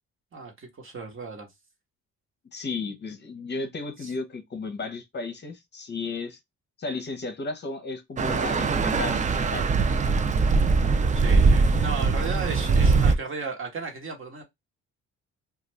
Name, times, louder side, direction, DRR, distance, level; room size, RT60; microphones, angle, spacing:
voice 1, 0.3-1.5 4.0-4.1 11.1-14.4, right 4 dB, 45° right, 1.2 m, -35 dB
voice 2, 2.5-6.4 6.8-9.7, left 3 dB, 35° left, 0.7 m, -34 dB
sound 1, 8.2-13.2, right 4 dB, 25° right, 0.4 m, -21 dB
2.5 x 2.4 x 3.1 m
cardioid pair, 90°, 30 cm